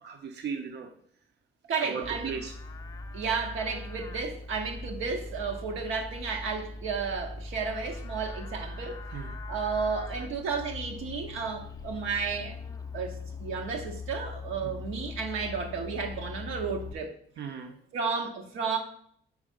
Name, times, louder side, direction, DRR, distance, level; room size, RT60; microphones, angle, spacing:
voice 1, 0.0-0.9 1.9-2.5 9.1-9.3 14.6-14.7 17.4-17.7, right 6 dB, 60° right, 0.7 m, -36 dB
voice 2, 1.7-2.4 3.1-9.0 9.5-12.6 12.9-17.1 17.9-18.8, right 5 dB, 85° right, 1.1 m, -32 dB
Livestock farm animals working animals, 2.0-16.9, left 3 dB, 15° left, 0.5 m, -41 dB
4.9 x 4.6 x 5.1 m
cardioid pair, 90°, 20 cm